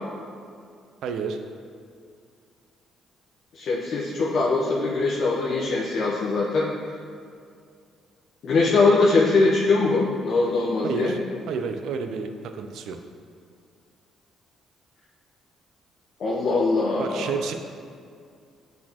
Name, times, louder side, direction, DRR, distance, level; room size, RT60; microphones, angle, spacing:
voice 1, 1.0-1.4 10.8-11.2 11.5-13.0 17.0-17.5, right 5 dB, 70° right, 7 dB, 0.4 m, -30 dB
voice 2, 3.5-6.7 8.4-11.1 16.2-17.3, left 3 dB, 55° left, -5 dB, 0.8 m, -22 dB
8.5 x 4.1 x 2.9 m, 2.3 s
cardioid pair, 130°, 0 cm